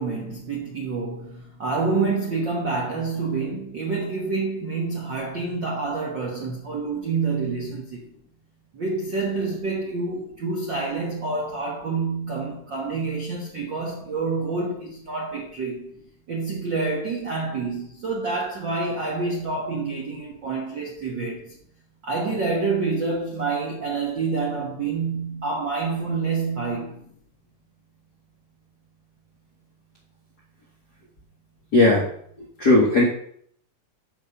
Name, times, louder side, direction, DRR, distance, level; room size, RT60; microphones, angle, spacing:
voice 1, 0.0-8.1 8.7-15.9 16.3-21.5 22.0-27.1, right 4 dB, 65° right, 1.1 m, -27 dB
voice 2, 31.7-32.0 32.6-33.0, left 2 dB, 55° left, 1.1 m, -16 dB
7.3 x 5.2 x 6.8 m
omnidirectional pair, 4.0 m